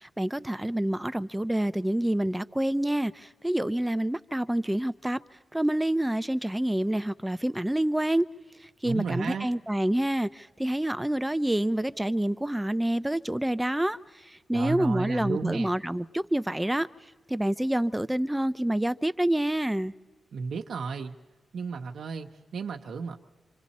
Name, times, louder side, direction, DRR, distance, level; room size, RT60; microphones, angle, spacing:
voice 1, 0.0-5.2 5.5-8.3 8.6-16.9 17.3-19.9, right 1 dB, 10° right, 0.6 m, -27 dB
voice 2, 8.8-9.5 14.5-15.7 20.3-21.1 21.5-23.2, right 5 dB, 80° right, 1.0 m, -33 dB
26.5 x 26.0 x 4.2 m
cardioid pair, 85°, 0 cm